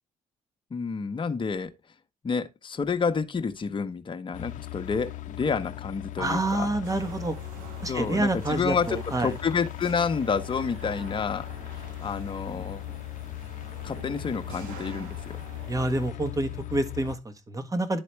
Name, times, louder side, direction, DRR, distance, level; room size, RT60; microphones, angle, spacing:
voice 1, 0.7-1.7 2.2-6.7 7.9-11.5 12.0-12.8 13.8-15.4, left 5 dB, 35° left, 1.0 m, -29 dB
sound 1, 4.3-17.2, left 15 dB, 65° left, 0.6 m, -38 dB
voice 2, 6.2-7.4 7.8-9.3 15.7-18.0, right 2 dB, 25° right, 1.5 m, -28 dB
sound 2, 6.8-16.1, right 6 dB, 90° right, 1.0 m, -47 dB
10.5 x 4.2 x 3.3 m
supercardioid pair, 70°, 14 cm